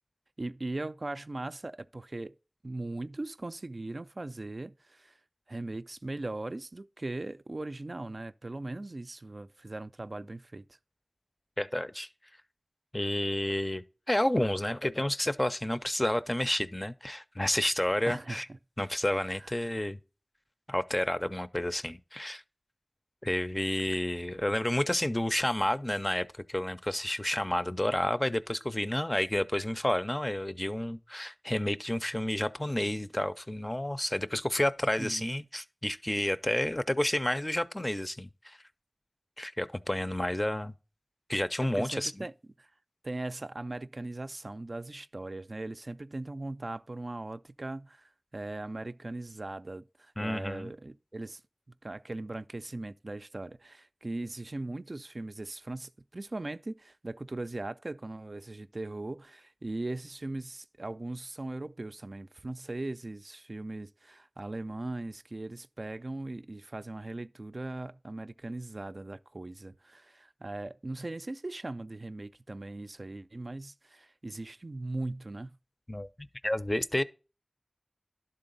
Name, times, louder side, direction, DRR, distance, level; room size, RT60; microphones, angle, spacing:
voice 1, 0.4-2.3 2.6-5.2 5.5-10.8 18.1-18.6 19.3-19.7 35.0-35.5 41.6-42.3 42.6-42.7 43.0-51.4 51.7-75.6, right 2 dB, 60° right, 0.3 m, -39 dB
voice 2, 11.6-12.1 12.9-18.5 18.8-20.0 20.7-22.4 23.2-38.6 39.4-40.7 41.3-42.2 50.2-50.7 75.9-77.0, left 1 dB, 25° left, 0.5 m, -30 dB
11.5 x 3.8 x 3.9 m
wide cardioid pair, 40°, 0 cm